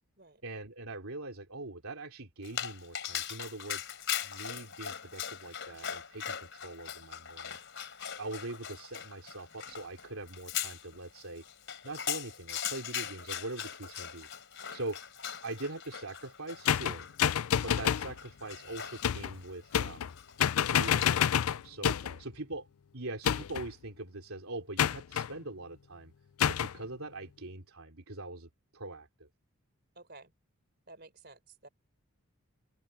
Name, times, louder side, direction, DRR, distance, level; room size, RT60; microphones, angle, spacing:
voice 1, 0.4-3.9 4.2-7.6 8.2-11.4 11.8-14.3 14.7-15.0 15.4-17.1 17.6-20.1 20.7-22.7 22.9-26.1 26.5-29.3, right 2 dB, 75° right, 3.1 m, -42 dB
Dog, 2.4-21.5, left 9 dB, 55° left, 4.0 m, -41 dB
sound 1, 16.7-18.1 19.0-19.4 19.7-20.1 20.4-22.2 23.2-23.7 24.8-25.3 26.4-26.8, left 9 dB, 75° left, 0.4 m, -28 dB
voice 2, 30.0-30.3 30.9-31.7, right 2 dB, 45° right, 3.9 m, -54 dB
open air
head